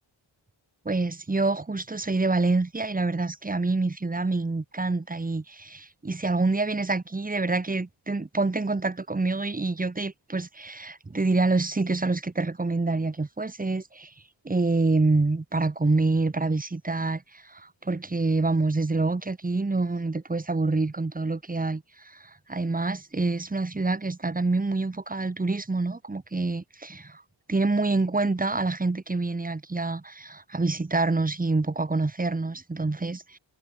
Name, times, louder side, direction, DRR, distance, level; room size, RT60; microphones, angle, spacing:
voice 1, 0.8-14.1 14.4-27.2 27.5-33.4, right 3 dB, 20° right, 0.9 m, -27 dB
wide cardioid pair, 75°, 47 cm